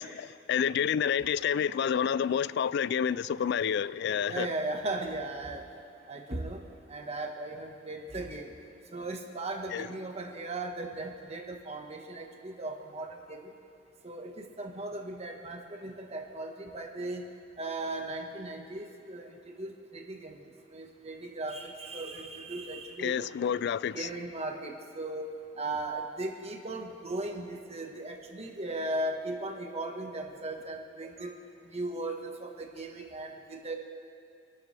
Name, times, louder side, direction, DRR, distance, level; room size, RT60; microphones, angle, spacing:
voice 1, 0.0-4.5 9.7-9.9 23.0-24.1, left 8 dB, 60° left, 19 dB, 0.3 m, -29 dB
voice 2, 4.2-5.6 6.1-6.6 6.9-8.5 8.9-13.4 14.0-17.2 17.6-20.4 20.7-23.3 23.9-31.3 31.7-33.8, right 2 dB, 35° right, 2 dB, 1.5 m, -37 dB
26.0 x 12.0 x 3.4 m, 2.5 s
head